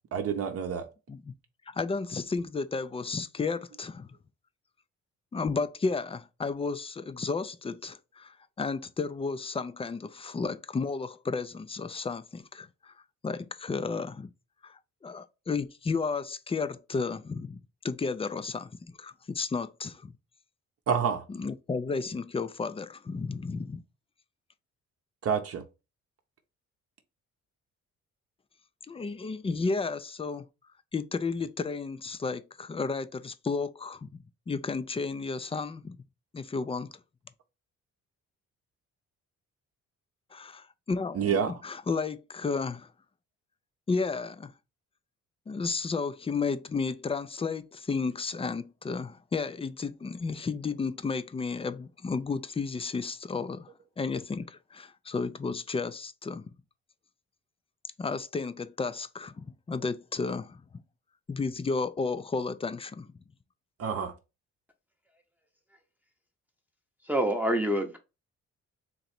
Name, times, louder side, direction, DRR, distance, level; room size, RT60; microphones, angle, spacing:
voice 1, 0.1-0.9 20.9-21.2 25.2-25.6 41.1-41.6 63.8-64.1, right 7 dB, 50° right, 0.8 m, -28 dB
voice 2, 1.7-4.1 5.3-12.9 13.2-14.3 14.6-17.6 17.8-18.7 19.0-20.1 21.3-23.8 28.9-30.4 30.9-34.1 34.5-36.0 36.3-36.9 40.3-42.9 43.9-44.5 45.5-53.7 54.0-56.4 58.0-60.6 61.3-63.1, left 4 dB, 20° left, 0.4 m, -33 dB
voice 3, 67.1-68.0, right 1 dB, 5° right, 0.8 m, -26 dB
3.9 x 3.0 x 4.3 m
cardioid pair, 90°, 30 cm